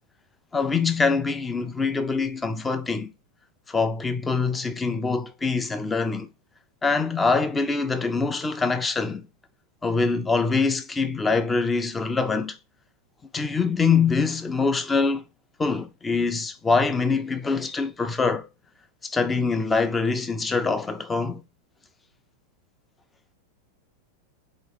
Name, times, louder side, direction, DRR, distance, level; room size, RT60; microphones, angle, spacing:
voice 1, 0.5-3.1 3.7-6.3 6.8-9.2 9.8-12.6 13.3-15.2 15.6-18.5 19.0-21.4, left 4 dB, 15° left, 0.5 m, -24 dB
4.0 x 3.1 x 4.1 m
figure-of-eight pair, 90°, 0 cm